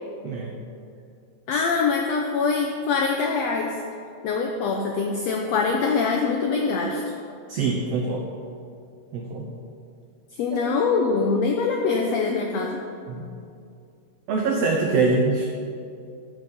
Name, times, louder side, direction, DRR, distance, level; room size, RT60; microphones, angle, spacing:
voice 1, 0.2-0.6 1.5-1.6 7.5-8.3 9.1-9.5 10.5-10.6 13.1-13.3 14.3-15.4, right 3 dB, 85° right, 1 dB, 1.4 m, -24 dB
voice 2, 1.5-3.7 4.2-7.0 10.4-12.8, left 4 dB, 85° left, 1 dB, 1.4 m, -23 dB
13.5 x 5.6 x 5.3 m, 2.4 s
omnidirectional pair, 3.8 m